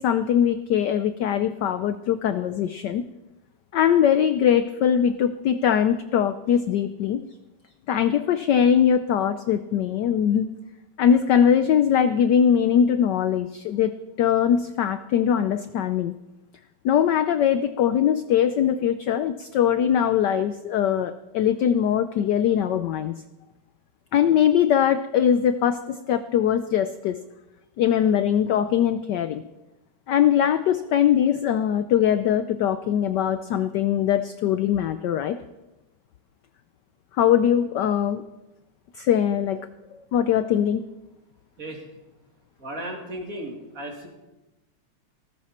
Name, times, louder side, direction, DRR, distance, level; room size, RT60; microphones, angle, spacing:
voice 1, 0.0-3.1 3.7-7.2 7.9-10.5 11.0-16.1 16.8-23.1 24.1-27.2 27.8-29.4 30.1-35.4 37.2-38.2 39.0-39.6 40.1-40.8, left 9 dB, 75° left, 11 dB, 1.0 m, -21 dB
voice 2, 42.6-44.1, right 1 dB, 40° right, 1 dB, 2.8 m, -35 dB
18.0 x 14.5 x 4.3 m, 1.0 s
omnidirectional pair, 2.4 m